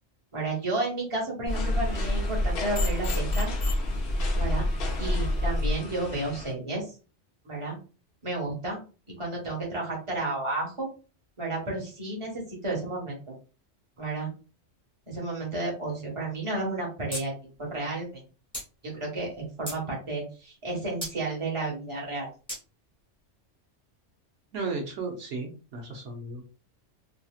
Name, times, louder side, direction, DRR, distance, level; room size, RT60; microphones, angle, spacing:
voice 1, 0.3-3.5 4.3-4.7 5.0-6.9 7.4-7.8 8.2-8.8 9.2-10.9 11.4-13.2 14.0-14.3 15.1-17.3 17.7-18.2 18.8-22.3, right 2 dB, 25° right, -2 dB, 1.2 m, -32 dB
sound 1, 1.5-6.5, left 3 dB, 60° left, 0.8 m, -38 dB
sound 2, 1.5-5.7, left 1 dB, 40° left, 1.2 m, -27 dB
sound 3, 17.1-17.2 17.5-17.6 18.5-18.7 19.3-19.8 21.0-21.2 22.5-22.6, equal, 5° left, 1.0 m, -35 dB
voice 2, 24.5-26.4, right 3 dB, 80° right, 1 dB, 1.0 m, -34 dB
2.8 x 2.7 x 2.3 m, 0.35 s
omnidirectional pair, 1.2 m